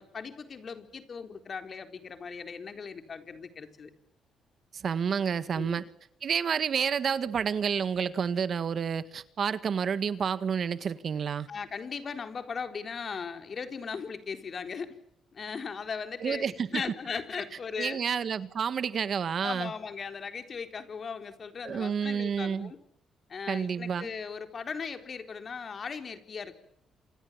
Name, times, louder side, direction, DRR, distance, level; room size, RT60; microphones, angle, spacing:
voice 1, 0.0-3.9 5.5-5.8 11.5-15.0 15.3-18.0 19.4-22.8 23.3-26.5, left 5 dB, 45° left, 4.0 m, -38 dB
voice 2, 4.7-5.8 6.2-11.5 16.2-16.8 17.8-19.7 21.6-22.7 23.5-24.1, right 7 dB, 50° right, 1.7 m, -29 dB
28.0 x 27.5 x 7.5 m
cardioid pair, 90°, 0 cm